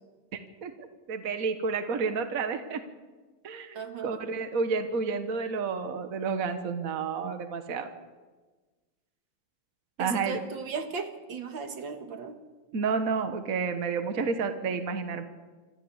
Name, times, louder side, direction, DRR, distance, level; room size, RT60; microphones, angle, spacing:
voice 1, 1.1-2.8 3.4-7.9 10.0-10.4 12.7-15.2, right 5 dB, 45° right, 7 dB, 1.6 m, -30 dB
voice 2, 3.7-4.2 10.0-12.4, right 5 dB, 70° right, 6 dB, 2.3 m, -36 dB
26.5 x 14.0 x 8.1 m, 1.3 s
omnidirectional pair, 2.2 m